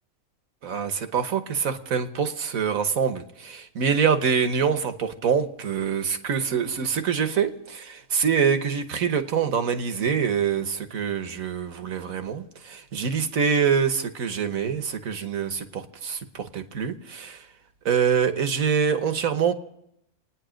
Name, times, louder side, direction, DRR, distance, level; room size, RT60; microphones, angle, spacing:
voice 1, 0.6-17.5 17.8-19.5, right 7 dB, 75° right, 8 dB, 1.6 m, -25 dB
28.0 x 9.9 x 5.1 m, 0.79 s
omnidirectional pair, 1.5 m